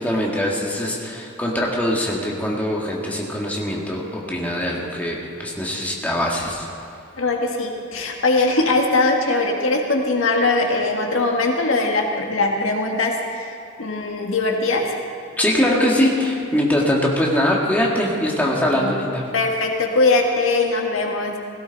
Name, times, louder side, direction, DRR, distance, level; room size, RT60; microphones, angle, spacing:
voice 1, 0.0-6.7 15.4-19.2, left 1 dB, 10° left, -3 dB, 1.9 m, -22 dB
voice 2, 7.2-14.9 18.5-19.0 19.3-21.4, left 3 dB, 85° left, 1 dB, 1.7 m, -21 dB
17.0 x 17.0 x 4.0 m, 2.4 s
head